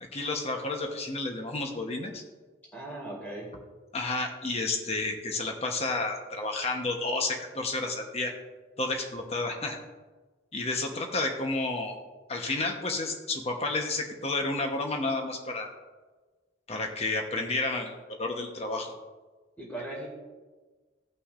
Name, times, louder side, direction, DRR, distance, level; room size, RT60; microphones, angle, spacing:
voice 1, 0.0-2.2 3.9-8.3 8.8-9.8 10.5-11.9 12.3-15.7 16.7-18.9, left 2 dB, 35° left, 3 dB, 1.0 m, -31 dB
voice 2, 2.7-3.5 19.6-20.1, right 1 dB, 10° left, -5 dB, 2.3 m, -38 dB
17.0 x 5.8 x 2.5 m, 1.3 s
head